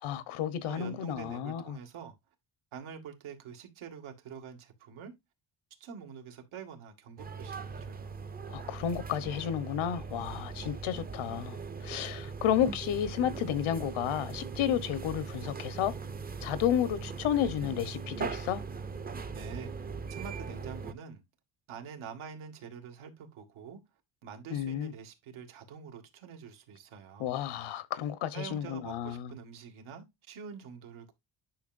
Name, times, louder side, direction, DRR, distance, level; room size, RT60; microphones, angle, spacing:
voice 1, 0.0-1.8 8.5-11.6 11.8-15.9 16.4-18.6 24.5-24.9 27.2-29.3, left 10 dB, 90° left, 1.2 m, -32 dB
voice 2, 0.7-2.2 2.7-5.1 5.8-8.1 19.3-21.2 21.7-23.8 24.2-27.3 28.3-31.1, right 7 dB, 85° right, 2.2 m, -46 dB
sound 1, 7.2-20.9, right 5 dB, 20° right, 0.5 m, -40 dB
10.0 x 6.0 x 2.6 m
cardioid pair, 165°, 47 cm